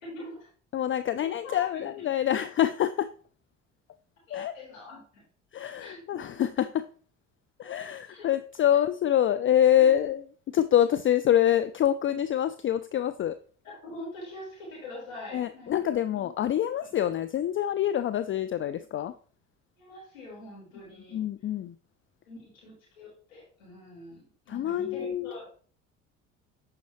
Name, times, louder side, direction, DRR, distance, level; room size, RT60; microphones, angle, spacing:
voice 1, 0.0-0.5 1.2-1.8 4.3-5.2 5.8-6.4 7.6-8.3 9.8-9.9 13.6-15.7 16.1-16.2 19.8-21.2 22.3-25.4, left 1 dB, 90° left, -4 dB, 4.1 m, -44 dB
voice 2, 0.7-3.1 4.3-4.5 5.5-6.8 7.6-10.2 10.5-13.4 15.3-19.1 21.1-21.7 24.5-25.3, left 11 dB, 35° left, 12 dB, 0.4 m, -26 dB
9.3 x 5.1 x 3.1 m, 0.43 s
hypercardioid pair, 60°, 39 cm